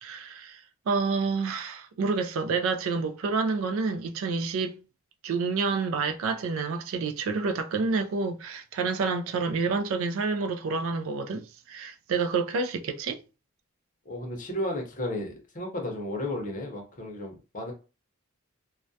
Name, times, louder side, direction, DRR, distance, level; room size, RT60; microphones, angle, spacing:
voice 1, 0.0-4.8 5.2-13.2, right 4 dB, 65° right, 0.3 m, -28 dB
voice 2, 14.1-17.7, left 1 dB, 35° left, 0.6 m, -33 dB
2.2 x 2.1 x 2.6 m
head